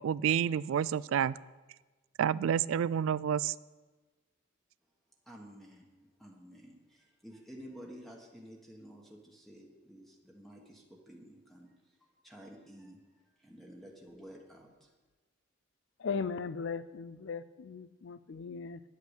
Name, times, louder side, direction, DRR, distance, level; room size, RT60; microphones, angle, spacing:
voice 1, 0.0-1.3 2.2-3.5, right 8 dB, 70° right, 19 dB, 0.3 m, -29 dB
voice 2, 5.2-14.9, equal, ahead, -1 dB, 1.2 m, -52 dB
voice 3, 16.0-18.8, left 5 dB, 60° left, 15 dB, 0.4 m, -38 dB
10.5 x 8.3 x 6.5 m, 1.2 s
head